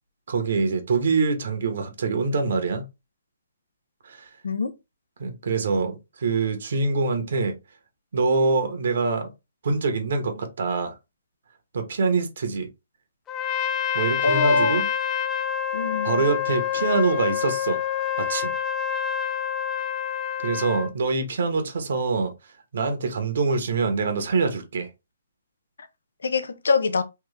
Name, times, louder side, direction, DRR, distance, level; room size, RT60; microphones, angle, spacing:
voice 1, 0.3-2.8 4.0-4.3 5.2-7.5 8.1-9.3 9.6-10.9 11.7-12.7 13.9-14.8 16.0-17.8 18.2-18.5 20.4-22.3 22.7-24.9, right 4 dB, 65° right, 1.3 m, -24 dB
Trumpet, 13.3-20.9, left 9 dB, 15° left, 0.5 m, -27 dB
voice 2, 14.2-14.8 15.7-16.2 26.2-27.0, left 4 dB, 85° left, 0.7 m, -23 dB
3.5 x 3.0 x 3.3 m
hypercardioid pair, 155°, 0 cm